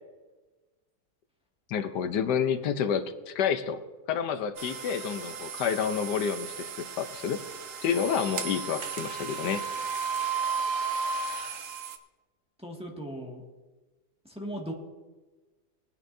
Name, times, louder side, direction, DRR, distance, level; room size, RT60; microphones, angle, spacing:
voice 1, 1.7-3.8 4.1-7.4 7.8-9.6, left 7 dB, 80° left, 10 dB, 1.4 m, -29 dB
sound 1, 4.6-12.0, right 5 dB, 55° right, 1.2 m, -34 dB
voice 2, 12.6-13.4 14.2-14.7, right 1 dB, 5° right, -2 dB, 1.8 m, -37 dB
21.5 x 10.0 x 2.7 m, 1.2 s
omnidirectional pair, 1.8 m